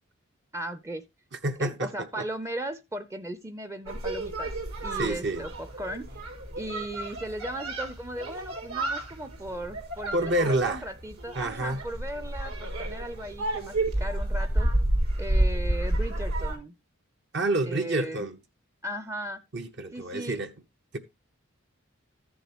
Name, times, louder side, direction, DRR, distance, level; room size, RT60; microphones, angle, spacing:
voice 1, 0.5-1.0 1.6-4.5 4.8-6.2 6.6-14.7 15.2-16.7 17.6-18.3 18.8-19.4 19.9-20.4, right 1 dB, 15° right, 0.5 m, -37 dB
voice 2, 1.4-1.9 5.0-5.4 10.1-10.8 11.4-11.8 17.3-18.4 19.5-20.5, right 2 dB, 55° right, 0.8 m, -28 dB
sound 1, 3.9-16.6, right 1 dB, 80° right, 3.9 m, -30 dB
14.0 x 7.1 x 2.9 m
head